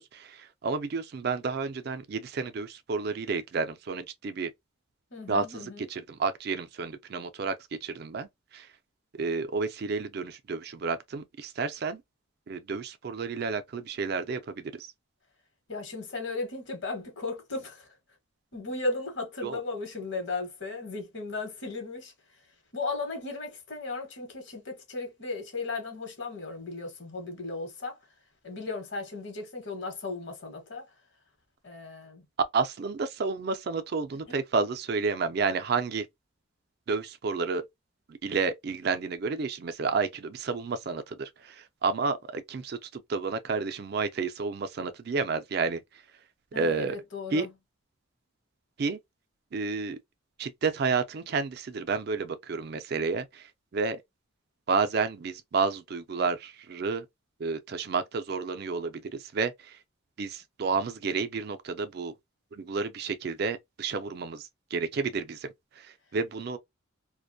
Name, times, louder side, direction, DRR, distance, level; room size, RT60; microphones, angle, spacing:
voice 1, 0.0-4.5 5.3-7.5 7.8-8.7 9.1-12.0 12.5-14.9 19.4-19.6 32.5-36.1 36.9-37.6 38.1-45.8 46.6-47.0 47.3-47.5 48.8-49.0 49.5-50.0 50.4-54.0 54.7-57.1 57.4-59.8 60.2-62.1 62.5-65.5 65.8-66.6, right 4 dB, 50° right, 0.4 m, -31 dB
voice 2, 5.1-5.9 15.7-17.9 18.5-22.1 22.7-28.0 28.4-30.9 31.6-32.2 34.3-34.4 46.5-47.5, left 3 dB, 60° left, 1.0 m, -36 dB
2.5 x 2.2 x 2.5 m
head